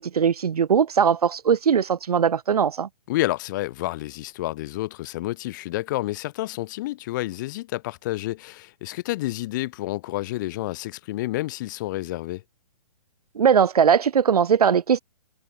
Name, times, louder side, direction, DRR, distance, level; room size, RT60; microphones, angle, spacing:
voice 1, 0.0-2.9 13.4-15.0, right 7 dB, 90° right, 2.0 m, -20 dB
voice 2, 3.1-12.4, left 17 dB, 30° left, 6.1 m, -29 dB
hypercardioid pair, 170°, 19 cm